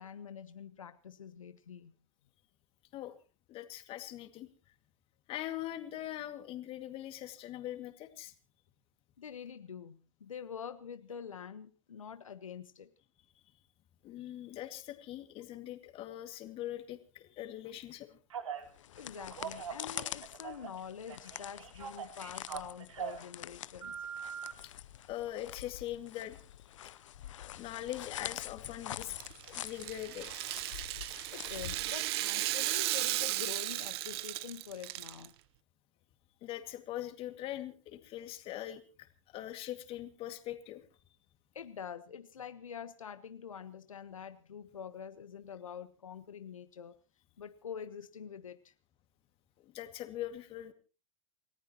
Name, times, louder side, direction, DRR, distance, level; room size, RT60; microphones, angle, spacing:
voice 1, 0.0-1.9 9.2-12.9 19.0-24.0 31.3-35.3 41.5-47.0 47.4-48.7, left 7 dB, 85° left, 10 dB, 1.1 m, -46 dB
voice 2, 3.5-4.5 5.3-8.3 14.0-18.2 24.6-24.7 25.1-26.4 26.8-26.9 27.4-29.1 29.4-30.3 36.4-38.8 39.3-40.8 49.7-50.7, left 13 dB, 35° left, 7 dB, 2.2 m, -42 dB
Telephone, 18.3-18.7 19.2-20.8 21.1-23.3 23.8-24.5, right 7 dB, 75° right, 2.9 m, -42 dB
sound 1, 18.7-32.4, left 12 dB, 70° left, 0.7 m, -46 dB
Rattle (instrument), 29.0-35.3, right 17 dB, 50° right, 0.9 m, -35 dB
29.5 x 14.5 x 3.0 m, 0.34 s
hypercardioid pair, 120°, 17 cm